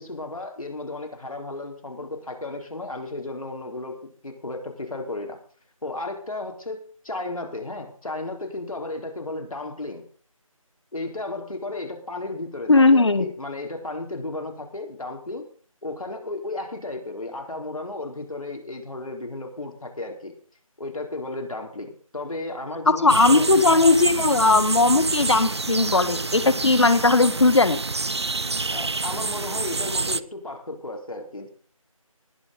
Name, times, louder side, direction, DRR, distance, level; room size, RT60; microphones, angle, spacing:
voice 1, 0.0-4.0 4.2-5.4 5.8-10.0 10.9-15.5 15.8-20.3 20.8-23.8 28.7-31.5, left 2 dB, 70° left, 3 dB, 4.1 m, -34 dB
voice 2, 12.7-13.2 23.0-27.8, left 3 dB, 50° left, 12 dB, 1.6 m, -18 dB
sound 1, 23.1-30.2, right 3 dB, 50° right, 0.5 m, -27 dB
19.5 x 6.8 x 5.2 m, 0.44 s
figure-of-eight pair, 175°, 18 cm